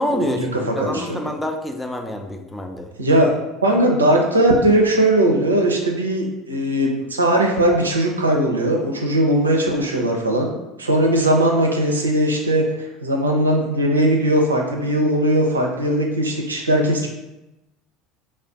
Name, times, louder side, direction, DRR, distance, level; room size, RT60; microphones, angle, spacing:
voice 1, 0.0-2.9, left 1 dB, 10° left, 4 dB, 0.4 m, -27 dB
voice 2, 0.6-1.2 3.0-3.3 3.6-10.5 10.8-17.1, right 1 dB, 85° right, 1 dB, 0.4 m, -19 dB
2.4 x 2.2 x 3.5 m, 0.97 s
figure-of-eight pair, 70°, 0 cm